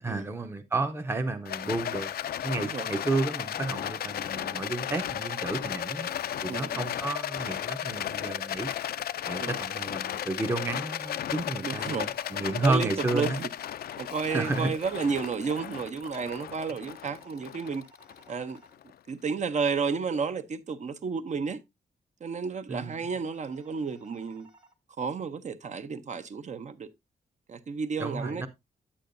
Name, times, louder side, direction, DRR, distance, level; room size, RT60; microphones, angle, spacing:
voice 1, 0.0-2.1 2.4-6.1 6.4-8.7 9.3-13.4 14.3-14.7 22.7-23.0 28.0-28.5, right 3 dB, 15° right, 0.7 m, -31 dB
Rattle, 1.4-18.8, left 10 dB, 80° left, 0.4 m, -35 dB
voice 2, 2.5-2.9 6.5-6.9 9.4-9.6 11.6-12.1 12.6-13.5 14.0-17.8 18.3-18.6 19.1-21.6 22.2-24.5 25.0-26.9 27.5-28.4, right 5 dB, 50° right, 0.7 m, -32 dB
sound 1, 11.6-12.7 16.7-18.7 22.7-24.7, right 3 dB, 30° right, 1.5 m, -58 dB
8.5 x 8.5 x 2.6 m
wide cardioid pair, 135°, 16 cm